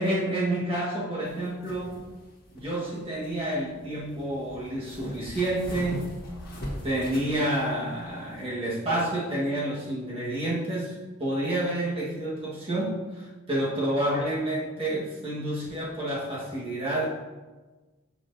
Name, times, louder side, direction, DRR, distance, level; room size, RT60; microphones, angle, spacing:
voice 1, 0.0-2.0 2.5-6.1 6.8-10.9 11.2-17.1, right 1 dB, 25° right, -5 dB, 1.4 m, -29 dB
sound 1, 1.2-8.4, equal, 50° left, 1.5 m, -41 dB
6.1 x 5.8 x 2.6 m, 1.3 s
head